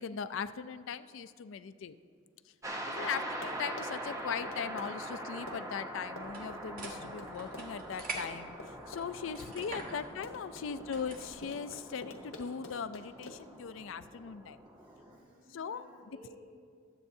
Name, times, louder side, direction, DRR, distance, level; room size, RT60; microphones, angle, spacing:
voice 1, 0.0-2.0 2.8-14.6 15.5-15.8, left 6 dB, 65° left, 13 dB, 0.4 m, -39 dB
sound 1, 2.6-15.2, right 1 dB, 15° right, 0.8 m, -43 dB
Run, 3.2-13.6, left 2 dB, 90° left, 1.1 m, -49 dB
sound 2, 6.2-11.4, right 3 dB, 45° right, 1.2 m, -46 dB
voice 2, 9.7-10.1 10.5-10.8 13.8-16.4, right 1 dB, 70° right, -6 dB, 3.0 m, -59 dB
21.0 x 7.8 x 2.7 m, 2.1 s
head